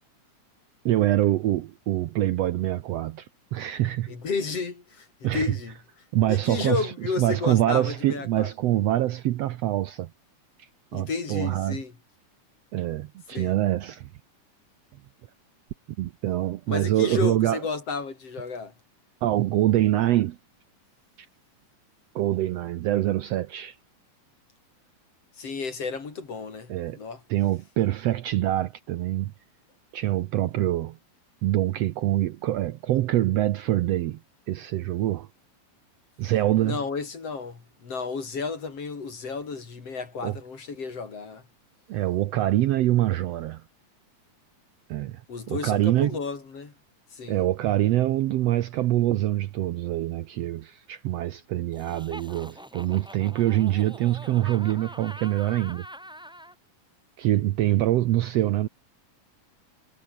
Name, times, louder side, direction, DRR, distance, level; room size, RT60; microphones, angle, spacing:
voice 1, 0.9-4.2 5.2-5.5 6.1-10.1 10.6-11.8 12.7-14.1 16.0-17.6 19.2-20.4 22.2-23.8 26.7-27.0 27.3-29.3 29.9-31.0 31.4-34.2 34.5-35.3 36.2-36.8 40.2-40.4 41.9-43.6 44.9-46.1 47.3-55.9 57.2-58.7, right 14 dB, 75° right, 1.6 m, -25 dB
voice 2, 4.1-5.1 5.3-5.7 6.3-8.5 10.9-11.9 13.3-13.6 16.7-18.7 25.4-27.2 36.6-41.4 45.3-46.7 47.1-47.4, left 4 dB, 50° left, 4.8 m, -32 dB
Laughter, 51.7-56.5, equal, ahead, 1.6 m, -44 dB
omnidirectional pair, 3.5 m